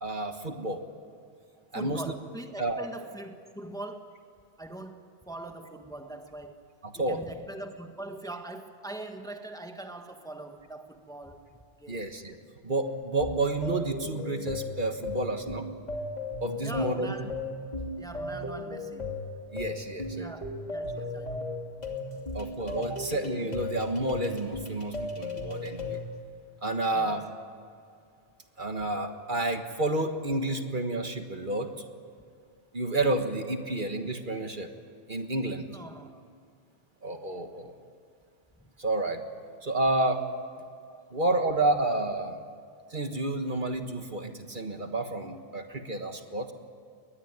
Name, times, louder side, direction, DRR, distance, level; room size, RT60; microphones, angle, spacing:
voice 1, 0.0-0.8 1.7-2.1 2.6-2.9 6.8-7.2 11.9-12.4 12.6-15.7 16.4-17.2 19.5-20.3 22.3-26.0 26.6-27.2 28.6-31.7 32.7-34.7 35.1-35.7 37.0-37.7 38.8-39.3 39.6-40.2 41.1-42.4 42.9-46.5, right 2 dB, 50° right, 6 dB, 1.7 m, -30 dB
voice 2, 1.7-4.2 4.6-6.7 6.9-12.0 16.6-17.4 18.0-19.1 20.2-21.5 22.9-23.1 26.9-27.2 35.7-36.2 40.9-41.1, right 2 dB, 5° left, 5 dB, 1.4 m, -42 dB
sound 1, 12.8-26.0, left 2 dB, 40° left, 3.0 m, -36 dB
22.0 x 20.5 x 9.5 m, 2.4 s
omnidirectional pair, 1.1 m